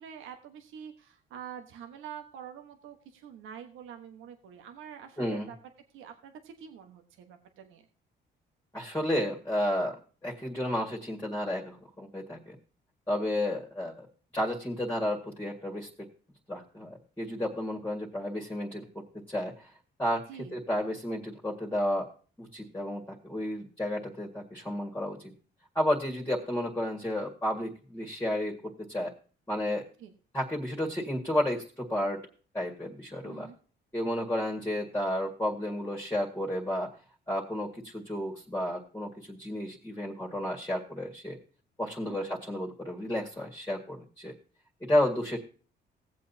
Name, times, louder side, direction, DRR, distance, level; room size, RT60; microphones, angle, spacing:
voice 1, 0.0-5.6 5.9-7.8 20.3-20.5 30.0-30.1 33.2-33.6 42.1-42.3, right 8 dB, 90° right, 5 dB, 1.3 m, -46 dB
voice 2, 5.2-5.5 8.7-10.0 10.2-12.6 13.1-14.1 14.3-16.1 16.5-19.7 20.0-20.3 20.5-22.1 22.4-25.3 25.8-29.1 29.5-29.9 30.3-32.3 32.5-33.5 33.9-36.9 37.3-41.4 41.8-44.3 44.8-45.4, left 1 dB, 10° left, -2 dB, 1.9 m, -32 dB
17.0 x 7.7 x 2.8 m, 0.39 s
cardioid pair, 90°, 20 cm